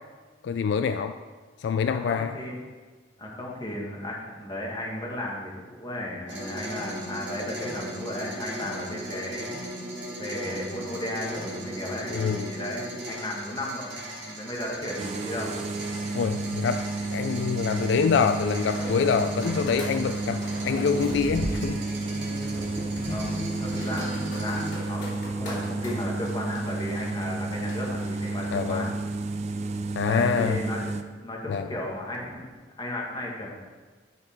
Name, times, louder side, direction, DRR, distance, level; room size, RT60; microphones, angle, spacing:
voice 1, 0.4-1.2 1.6-2.3 12.1-12.5 16.1-21.8 28.5-28.9 30.0-30.6 31.5-31.7, left 6 dB, 70° left, 9 dB, 0.3 m, -26 dB
voice 2, 1.9-2.6 3.2-9.6 10.2-12.2 12.5-15.5 23.0-28.9 30.0-30.8 31.2-32.5 32.8-33.5, left 1 dB, 25° left, -2 dB, 1.5 m, -34 dB
sound 1, 6.3-24.7, right 1 dB, 75° right, 2.0 m, -38 dB
sound 2, 15.0-31.0, right 3 dB, 35° right, 0.4 m, -31 dB
sound 3, 18.4-28.5, left 1 dB, 85° left, 2.6 m, -39 dB
9.7 x 5.3 x 4.3 m, 1.4 s
head